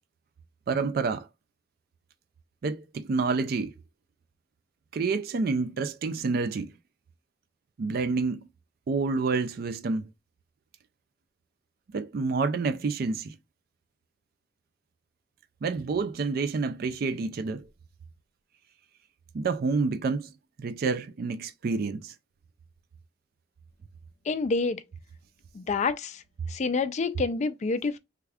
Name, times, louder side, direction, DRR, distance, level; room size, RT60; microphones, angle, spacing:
voice 1, 0.7-1.3 2.6-3.7 4.9-6.7 7.8-8.4 8.9-10.1 11.9-13.4 15.6-17.7 19.3-20.3 20.6-22.1, right 4 dB, 50° right, 0.4 m, -28 dB
voice 2, 24.3-24.8 25.5-26.2 26.5-28.0, left 4 dB, 35° left, 0.3 m, -28 dB
3.4 x 2.3 x 3.4 m
head